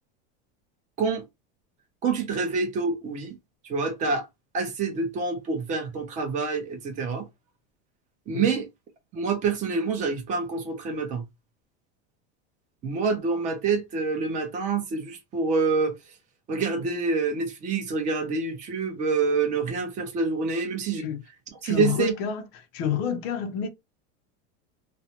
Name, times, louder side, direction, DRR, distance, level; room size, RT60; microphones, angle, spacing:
voice 1, 2.0-3.4 3.7-4.3 4.5-7.3 8.3-8.6 9.1-11.2 12.8-15.9 16.5-21.0 21.6-22.1, right 4 dB, 25° right, 0.7 m, -26 dB
voice 2, 21.6-23.7, left 7 dB, 35° left, 0.4 m, -29 dB
2.4 x 2.1 x 2.8 m
supercardioid pair, 170°, 33 cm